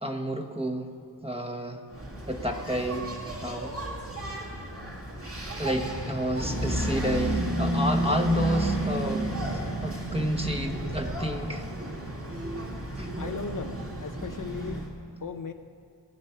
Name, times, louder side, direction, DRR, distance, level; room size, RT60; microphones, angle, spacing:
voice 1, 0.0-0.9 1.2-1.8 2.3-3.1 3.4-3.7 5.6-9.3 9.5-11.7 13.0-13.1, equal, 15° right, 4 dB, 1.2 m, -30 dB
Engine, 1.9-14.9, right 1 dB, 30° right, 2.3 m, -32 dB
voice 2, 13.1-14.9 15.2-15.5, left 6 dB, 45° left, 7 dB, 0.6 m, -37 dB
20.0 x 8.5 x 5.8 m, 2.3 s
wide cardioid pair, 80°, 44 cm